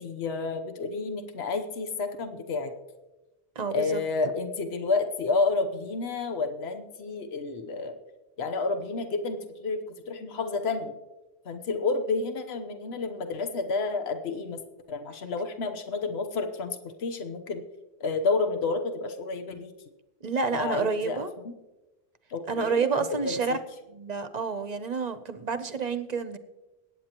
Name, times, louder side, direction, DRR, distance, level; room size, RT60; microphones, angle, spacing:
voice 1, 0.0-2.7 3.7-8.0 8.4-9.8 10.1-10.9 11.4-14.6 14.9-17.6 18.0-19.7 20.5-21.5 22.3-23.6, left 3 dB, 75° left, 7 dB, 1.2 m, -30 dB
voice 2, 3.6-4.0 20.2-21.3 22.5-23.6 23.9-26.4, right 5 dB, 45° right, 11 dB, 0.8 m, -29 dB
21.5 x 9.3 x 2.9 m, 1.1 s
omnidirectional pair, 1.1 m